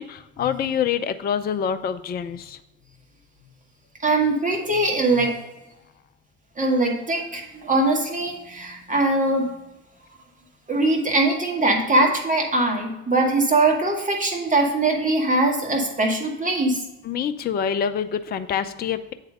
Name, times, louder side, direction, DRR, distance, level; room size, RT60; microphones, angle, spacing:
voice 1, 0.0-2.6 17.0-19.1, left 8 dB, 25° left, 11 dB, 0.4 m, -26 dB
voice 2, 4.0-5.4 6.6-9.5 10.7-16.8, right 2 dB, 20° right, 1 dB, 1.9 m, -21 dB
8.1 x 4.0 x 5.1 m, 0.98 s
figure-of-eight pair, 50°, 37 cm